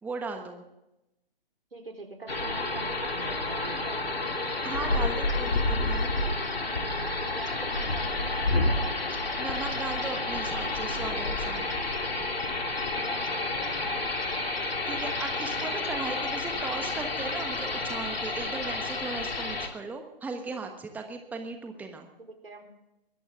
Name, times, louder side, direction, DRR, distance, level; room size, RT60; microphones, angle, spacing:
voice 1, 0.0-0.6 4.6-6.1 9.4-11.7 14.6-22.1, right 4 dB, 5° right, 5 dB, 1.3 m, -37 dB
voice 2, 1.7-4.2 7.2-9.0 13.0-14.2 22.4-22.7, right 3 dB, 85° right, 2 dB, 4.5 m, -44 dB
sound 1, 2.3-19.7, left 2 dB, 85° left, 3.0 m, -30 dB
22.5 x 14.0 x 3.7 m, 0.89 s
figure-of-eight pair, 135°, 29 cm